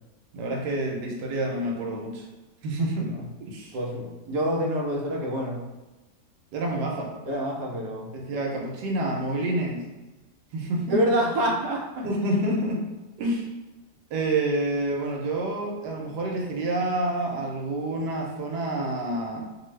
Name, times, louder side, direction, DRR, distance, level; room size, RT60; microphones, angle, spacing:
voice 1, 0.3-2.3 2.6-3.1 3.4-3.8 6.5-7.1 8.1-9.9 10.5-11.0 12.0-12.8 13.2-13.5 14.1-19.5, right 1 dB, 90° right, 0 dB, 1.2 m, -28 dB
voice 2, 3.7-5.6 7.2-8.1 10.9-12.1, right 1 dB, 70° right, -1 dB, 1.1 m, -27 dB
2.6 x 2.6 x 3.1 m, 1.1 s
omnidirectional pair, 1.8 m